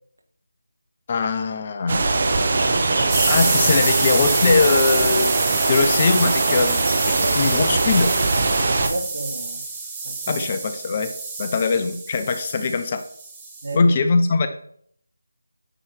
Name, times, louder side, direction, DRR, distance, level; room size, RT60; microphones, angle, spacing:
voice 1, 1.1-2.0 3.3-5.3 5.7-8.1 10.3-11.1 11.4-13.0 13.7-14.5, left 4 dB, 30° left, 9 dB, 0.4 m, -21 dB
sound 1, 1.9-8.9, right 3 dB, 40° right, 0.8 m, -21 dB
sound 2, 2.6-7.6, right 1 dB, 75° right, 1.5 m, -35 dB
sound 3, 3.1-13.7, right 4 dB, 10° right, 0.9 m, -28 dB
voice 2, 8.6-9.6 10.0-10.3 13.6-13.9, right 1 dB, 55° right, 4 dB, 1.3 m, -31 dB
9.1 x 3.1 x 4.3 m, 0.63 s
figure-of-eight pair, 160°, 0 cm